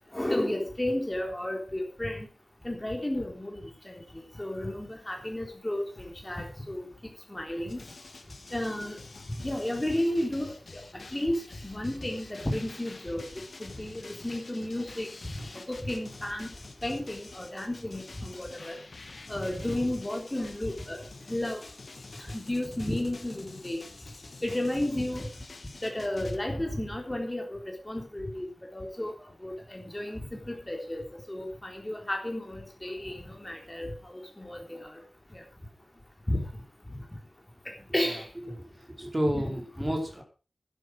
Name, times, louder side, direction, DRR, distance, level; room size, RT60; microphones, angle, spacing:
voice 1, 0.1-2.3 2.6-3.6 3.9-6.9 7.3-7.8 8.5-9.0 9.4-10.5 11.1-13.3 13.6-15.1 15.7-16.5 16.8-18.8 19.3-21.0 21.3-21.6 22.2-23.8 24.4-25.3 25.8-28.5 28.7-29.1 29.4-34.9 35.3-35.4 36.3-36.4 37.9-38.3 39.3-39.5, left 1 dB, 15° left, 2 dB, 3.7 m, -32 dB
sound 1, 7.7-26.4, left 3 dB, 60° left, 2.3 m, -48 dB
voice 2, 38.6-40.2, equal, 20° right, 2 dB, 4.9 m, -30 dB
11.5 x 11.0 x 6.2 m, 0.36 s
wide cardioid pair, 80°, 0 cm